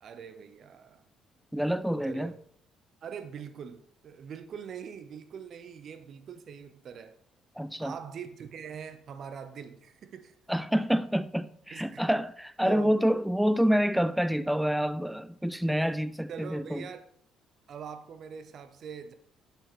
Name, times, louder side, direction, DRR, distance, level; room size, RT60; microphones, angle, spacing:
voice 1, 0.0-1.0 2.1-2.3 3.0-7.2 7.8-10.3 11.7-12.0 12.6-12.9 16.3-17.1 17.7-19.1, right 7 dB, 60° right, 0.7 m, -43 dB
voice 2, 1.5-2.3 7.6-7.9 10.5-16.9, equal, ahead, 0.3 m, -27 dB
6.5 x 6.1 x 3.0 m
supercardioid pair, 65°, 0 cm